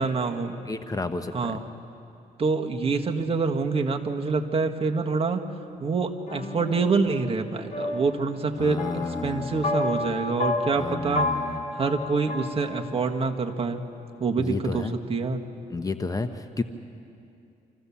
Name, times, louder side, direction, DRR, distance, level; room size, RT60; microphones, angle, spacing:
voice 1, 0.0-0.6 1.3-1.6 2.4-5.4 5.8-11.3 11.7-13.8 14.2-15.4, right 4 dB, 35° right, 3 dB, 1.6 m, -26 dB
voice 2, 0.6-1.6 8.6-9.8 10.8-11.6 14.4-14.9 15.7-16.6, left 3 dB, 20° left, 9 dB, 0.9 m, -31 dB
sound 1, 6.3-13.2, left 2 dB, 45° left, 3.6 m, -32 dB
26.5 x 15.0 x 7.2 m, 2.6 s
cardioid pair, 95°, 16 cm